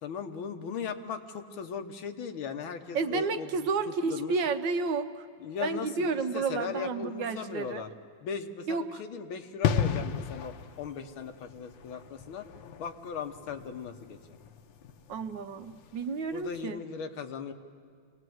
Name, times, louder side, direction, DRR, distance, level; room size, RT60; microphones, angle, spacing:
voice 1, 0.0-3.6 3.9-4.3 5.4-7.9 8.2-12.5 12.8-14.4 16.3-17.5, left 6 dB, 90° left, 6 dB, 1.9 m, -38 dB
voice 2, 2.9-5.3 5.6-7.8 8.7-8.8 15.1-16.8, right 4 dB, 70° right, 8 dB, 1.5 m, -31 dB
sound 1, 9.6-16.1 16.4-16.6, left 8 dB, 70° left, 1.4 m, -34 dB
26.0 x 18.5 x 7.8 m, 2.2 s
omnidirectional pair, 2.2 m